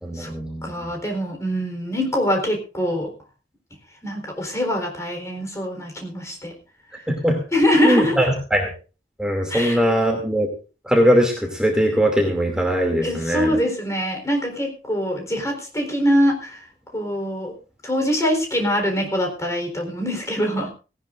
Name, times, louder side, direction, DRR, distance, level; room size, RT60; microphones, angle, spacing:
voice 1, 0.0-0.7 7.2-7.4 7.8-8.2 8.5-8.7 9.2-10.5 10.9-13.5, equal, 5° right, 0 dB, 2.6 m, -20 dB
voice 2, 0.6-3.1 4.0-6.5 7.5-8.2 9.5-9.8 13.0-16.6 16.9-17.5 17.8-20.7, equal, 15° left, 3 dB, 4.0 m, -23 dB
18.0 x 18.0 x 2.6 m, 0.35 s
head